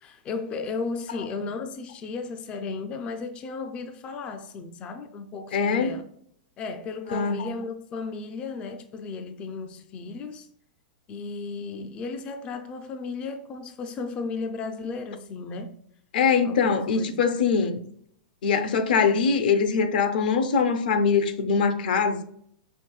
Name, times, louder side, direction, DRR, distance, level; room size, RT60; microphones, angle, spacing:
voice 1, 0.0-6.0 6.6-10.5 11.1-15.7 16.4-17.2 17.6-17.7, left 4 dB, 25° left, 0.3 m, -35 dB
voice 2, 5.5-6.0 7.1-7.4 16.1-17.8 18.4-22.2, left 5 dB, 70° left, 0.6 m, -22 dB
5.1 x 2.9 x 2.3 m
hypercardioid pair, 145°, 5 cm